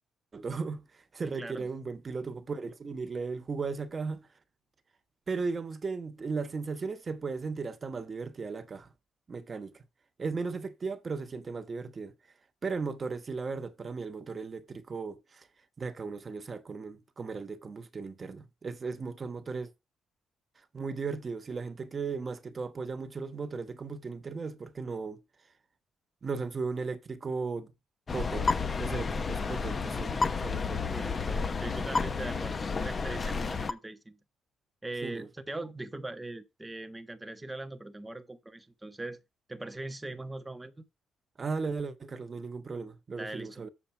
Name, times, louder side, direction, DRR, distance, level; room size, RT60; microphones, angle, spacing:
voice 1, 0.3-0.8 1.1-4.3 5.3-8.9 9.3-9.7 10.2-12.1 12.6-15.5 15.8-19.7 20.7-25.2 26.2-27.7 28.1-31.0 35.0-35.3 41.4-43.7, right 4 dB, 35° right, 1.2 m, -36 dB
voice 2, 1.2-1.7 30.9-34.2 34.8-39.2 39.5-40.8 43.2-43.7, right 2 dB, 15° right, 1.3 m, -41 dB
sound 1, 28.1-33.7, left 4 dB, 35° left, 0.9 m, -31 dB
7.3 x 6.6 x 4.5 m
cardioid pair, 90°, 0 cm